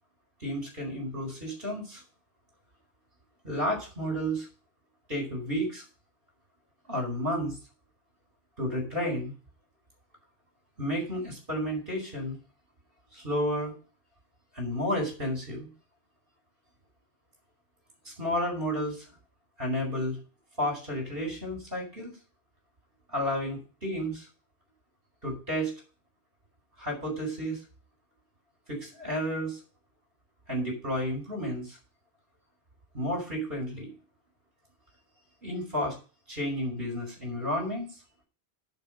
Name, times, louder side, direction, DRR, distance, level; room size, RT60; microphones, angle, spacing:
voice 1, 0.4-2.0 3.4-4.5 5.1-5.8 6.9-7.6 8.6-9.3 10.8-12.4 13.1-13.7 14.5-15.7 18.0-19.0 19.6-20.2 20.6-22.1 23.1-24.2 25.2-25.7 26.8-27.6 28.7-29.6 30.5-31.8 32.9-33.9 35.4-36.0 36.3-37.9, equal, 60° right, 0 dB, 5.0 m, -31 dB
10.5 x 4.9 x 7.7 m, 0.35 s
omnidirectional pair, 1.1 m